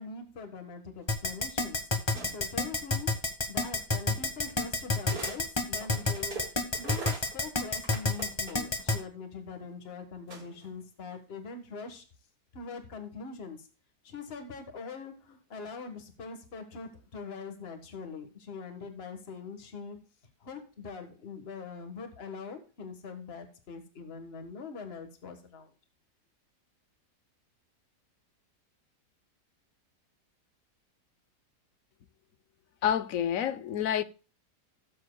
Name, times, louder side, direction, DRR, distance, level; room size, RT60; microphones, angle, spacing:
voice 1, 0.0-1.8 2.3-3.1 3.5-12.0 12.5-13.7 14.0-20.0 20.4-25.7, left 5 dB, 35° left, 1.7 m, -43 dB
Keyboard (musical), 1.1-9.0, left 2 dB, 20° left, 1.1 m, -28 dB
sound 1, 2.1-2.6 3.8-3.9 5.0-5.4 5.8-8.9 10.3-10.7, right 3 dB, 60° right, 2.7 m, -42 dB
voice 2, 32.8-34.0, left 9 dB, 60° left, 1.0 m, -28 dB
17.0 x 7.5 x 2.3 m
omnidirectional pair, 1.8 m